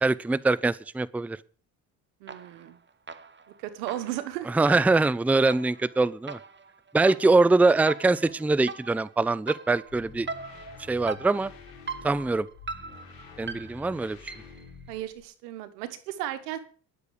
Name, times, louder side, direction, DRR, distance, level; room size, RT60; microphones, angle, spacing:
voice 1, 0.0-1.4 4.5-6.4 6.9-10.3 10.9-11.5 12.0-12.5 13.4-14.2, right 3 dB, 5° right, 19 dB, 0.5 m, -23 dB
voice 2, 2.2-2.8 3.6-4.5 14.9-16.6, right 13 dB, 85° right, 11 dB, 1.4 m, -35 dB
sound 1, 2.3-2.7 3.1-14.7, right 4 dB, 25° right, 1.2 m, -41 dB
sound 2, 9.8-15.2, left 5 dB, 80° left, 3.8 m, -48 dB
11.5 x 7.0 x 8.4 m, 0.42 s
hypercardioid pair, 60°, 46 cm